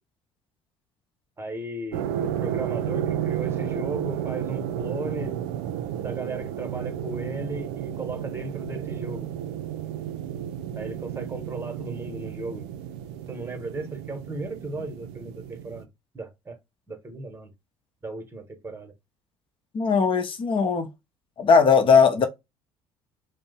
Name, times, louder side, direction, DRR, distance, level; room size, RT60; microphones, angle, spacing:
voice 1, 1.4-5.4 6.0-9.3 10.7-12.6 13.3-15.9 16.1-16.6 16.9-17.5 18.0-18.9, right 2 dB, 20° right, 1.1 m, -36 dB
sound 1, 1.9-15.8, right 10 dB, 70° right, 0.4 m, -32 dB
voice 2, 19.7-20.9 21.4-22.3, left 5 dB, 40° left, 0.8 m, -19 dB
2.7 x 2.1 x 4.0 m
hypercardioid pair, 60°, 14 cm